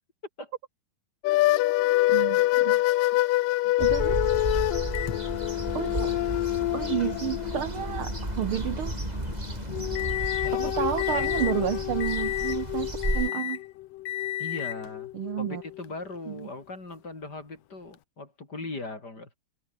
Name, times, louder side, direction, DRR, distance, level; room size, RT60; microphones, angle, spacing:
sound 1, 1.2-8.6 9.7-15.8, left 17 dB, 90° left, 2.5 m, -27 dB
voice 1, 2.1-2.8 3.8-4.2 5.7-6.2 6.7-9.0 10.5-13.6 15.1-15.6 16.3-16.5, right 10 dB, 75° right, 1.2 m, -31 dB
sound 2, 3.8-13.3, right 2 dB, 10° right, 3.2 m, -33 dB
Microwave oven, 4.9-10.6 11.0-11.6 12.0-12.6 13.0-13.7 14.0-14.9 15.8-15.9 17.9-18.0, left 13 dB, 65° left, 1.9 m, -35 dB
voice 2, 10.4-11.9 14.4-15.1 15.4-19.4, left 3 dB, 30° left, 4.9 m, -39 dB
omnidirectional pair, 3.8 m